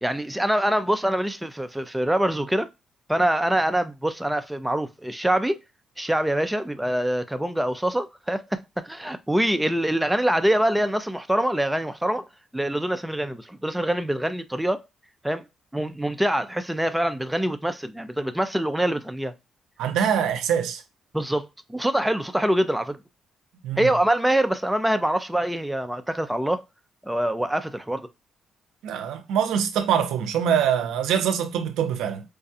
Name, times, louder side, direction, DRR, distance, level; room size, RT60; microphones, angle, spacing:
voice 1, 0.0-2.7 3.1-5.6 6.0-12.3 12.5-14.8 15.2-15.4 15.7-19.3 21.1-23.0 23.8-26.6 27.0-28.1, right 1 dB, 5° right, 0.5 m, -24 dB
voice 2, 19.8-20.8 23.6-23.9 28.8-32.2, right 8 dB, 90° right, 0.6 m, -24 dB
4.8 x 2.2 x 2.6 m
cardioid pair, 90°, 0 cm